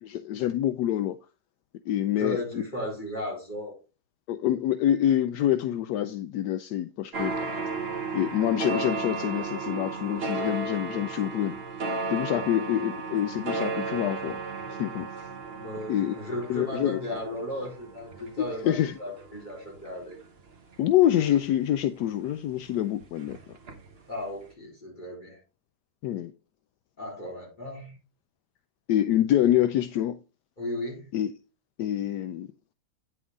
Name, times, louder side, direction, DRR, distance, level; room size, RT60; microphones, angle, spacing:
voice 1, 0.0-1.2 1.9-2.4 4.3-7.3 8.1-11.6 12.1-14.4 14.7-15.1 15.9-16.2 16.5-17.0 18.6-19.0 20.8-23.4 26.0-26.3 28.9-30.2 31.1-31.3 31.8-32.5, left 12 dB, 80° left, 1.1 m, -26 dB
voice 2, 2.1-3.8 7.4-7.6 12.3-12.8 15.5-20.2 24.1-25.4 27.0-28.0 30.6-31.1, left 1 dB, 25° left, 4.3 m, -36 dB
sound 1, 7.1-22.3 22.6-24.0 24.3-24.4, right 3 dB, 40° right, 1.2 m, -35 dB
9.3 x 6.3 x 3.6 m
omnidirectional pair, 1.8 m